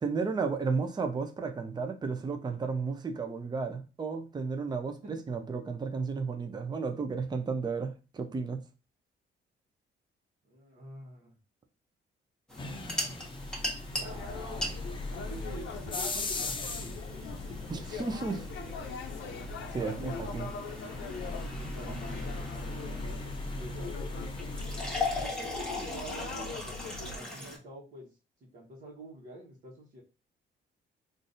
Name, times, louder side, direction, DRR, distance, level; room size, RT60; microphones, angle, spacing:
voice 1, 0.0-8.6 17.7-18.4 19.7-20.5, right 4 dB, 20° right, 0.5 m, -33 dB
voice 2, 10.5-11.3 13.9-14.7 15.3-17.2 17.5-17.6 18.3-18.7 19.8-20.2 21.4-22.3 22.8-24.5 25.1-26.8 27.1-28.2 28.5-30.0, right 1 dB, 60° right, 1.2 m, -47 dB
sound 1, 12.5-27.6, left 2 dB, 5° left, 1.2 m, -40 dB
sound 2, 12.6-25.3, left 2 dB, 25° left, 0.6 m, -40 dB
sound 3, 14.0-27.2, left 4 dB, 70° left, 0.5 m, -41 dB
3.8 x 2.5 x 2.5 m
cardioid pair, 90°, 20 cm